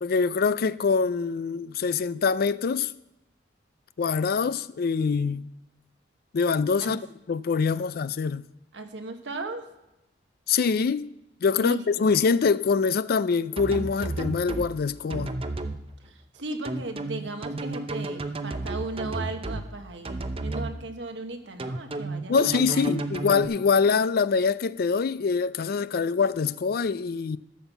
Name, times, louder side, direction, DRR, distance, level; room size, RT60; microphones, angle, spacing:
voice 1, 0.0-2.9 4.0-5.5 6.3-8.4 10.5-11.1 11.4-15.3 22.3-27.4, left 5 dB, 55° left, 0.4 m, -24 dB
voice 2, 8.7-9.6 11.5-12.1 16.0-23.0, right 2 dB, 80° right, 1.3 m, -37 dB
sound 1, 13.6-14.7 15.1-15.8 16.6-19.6 20.0-20.7 21.6-23.4, right 2 dB, 30° right, 0.7 m, -32 dB
13.5 x 5.6 x 7.1 m
head